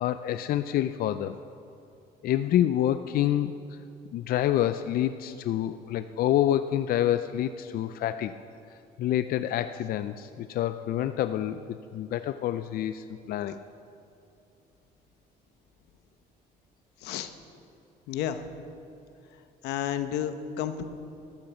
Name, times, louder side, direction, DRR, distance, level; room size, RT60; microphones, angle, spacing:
voice 1, 0.0-1.4 2.2-3.5 4.1-8.3 9.0-11.6 11.9-13.6, left 12 dB, 60° left, 11 dB, 0.5 m, -27 dB
voice 2, 18.1-18.5 19.6-20.8, left 10 dB, 85° left, 10 dB, 0.9 m, -31 dB
13.0 x 12.0 x 7.0 m, 2.7 s
cardioid pair, 110°, 17 cm